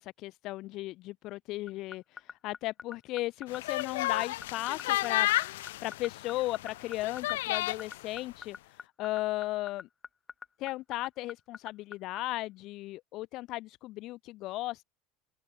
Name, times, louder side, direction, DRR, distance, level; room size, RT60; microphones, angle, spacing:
voice 1, 0.0-5.3 5.8-8.6 9.0-9.9 10.6-14.8, left 18 dB, 55° left, 4.3 m, -36 dB
sound 1, 1.7-12.2, left 5 dB, 25° left, 3.9 m, -42 dB
sound 2, 3.5-8.0, left 17 dB, 80° left, 4.8 m, -32 dB
open air
supercardioid pair, 105°, 0 cm